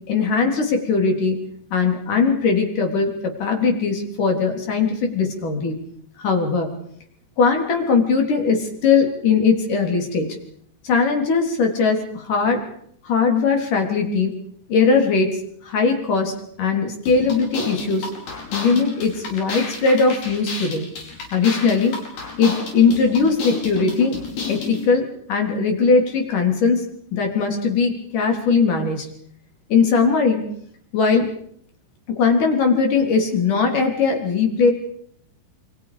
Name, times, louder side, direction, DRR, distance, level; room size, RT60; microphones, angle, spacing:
voice 1, 0.0-1.4 1.7-3.1 3.4-5.7 6.2-6.7 7.4-10.3 10.8-12.6 13.0-14.3 14.7-18.1 18.5-20.9 21.3-21.9 22.4-24.2 24.5-26.8 27.1-29.1 29.7-30.5 30.9-31.3 32.2-34.7, left 5 dB, 55° left, 3 dB, 5.1 m, -19 dB
sound 1, 17.1-24.9, left 4 dB, 85° left, 7.0 m, -32 dB
28.0 x 25.5 x 5.1 m, 0.65 s
omnidirectional pair, 4.4 m